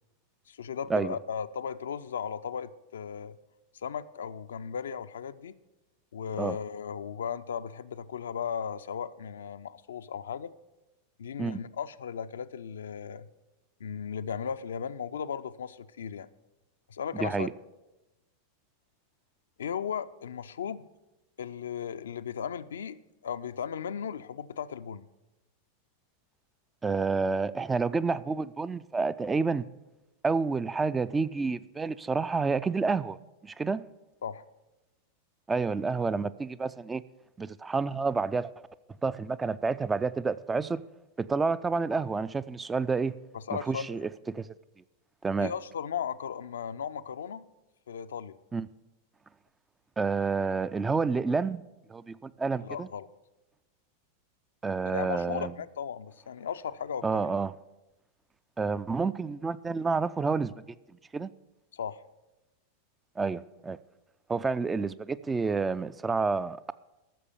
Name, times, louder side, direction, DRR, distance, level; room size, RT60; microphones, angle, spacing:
voice 1, 0.5-3.4 3.8-5.6 6.1-10.5 11.2-13.3 13.8-16.3 16.9-17.5 19.6-20.9 21.4-25.0 34.2-34.5 43.3-43.9 45.4-47.4 47.9-48.3 52.6-53.1 54.9-57.1 61.7-62.0, left 7 dB, 65° left, 0.4 m, -36 dB
voice 2, 17.2-17.5 26.8-29.6 30.2-33.2 33.4-33.8 35.5-37.0 37.4-38.5 39.0-40.8 41.2-43.1 43.7-44.5 45.2-45.5 48.5-48.7 50.0-51.6 51.9-52.9 54.6-55.5 57.0-57.5 58.6-60.5 61.1-61.3 63.2-63.8 64.3-66.7, right 4 dB, 15° right, 0.3 m, -29 dB
13.5 x 6.7 x 6.9 m
figure-of-eight pair, 90°, 0 cm